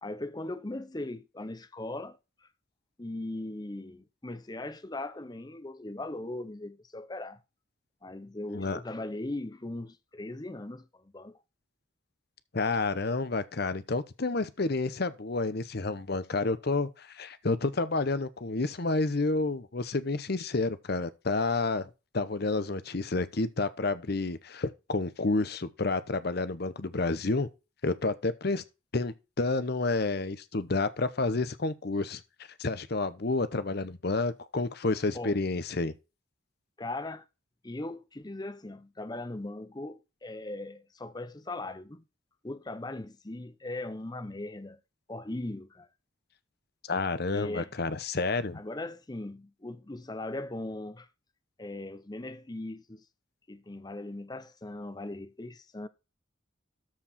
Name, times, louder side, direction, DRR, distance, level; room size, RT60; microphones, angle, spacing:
voice 1, 0.0-2.5 3.0-7.4 8.0-11.4 35.1-35.4 36.8-37.2 37.6-42.0 42.4-44.8 45.1-45.9 47.3-47.7 48.5-51.1 51.6-53.0 53.5-55.9, left 2 dB, 20° left, 0.7 m, -39 dB
voice 2, 12.5-27.5 27.8-28.6 28.9-32.2 32.6-35.9 46.9-48.6, left 3 dB, 50° left, 0.8 m, -30 dB
13.0 x 4.7 x 4.1 m
head